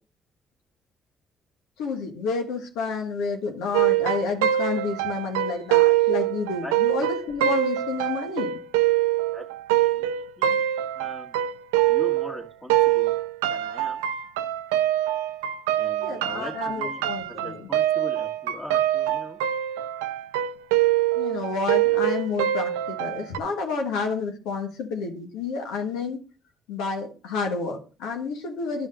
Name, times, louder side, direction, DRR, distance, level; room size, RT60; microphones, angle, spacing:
voice 1, 1.8-8.6 16.0-17.6 21.1-26.2 26.7-28.9, left 4 dB, 80° left, 1.5 m, -30 dB
sound 1, 3.7-12.4 12.7-23.4, right 12 dB, 85° right, 0.4 m, -24 dB
voice 2, 10.9-11.4 11.9-13.1 13.5-14.0 15.7-19.4, left 1 dB, 25° left, 2.1 m, -40 dB
11.0 x 5.4 x 3.8 m
hypercardioid pair, 50°, 0 cm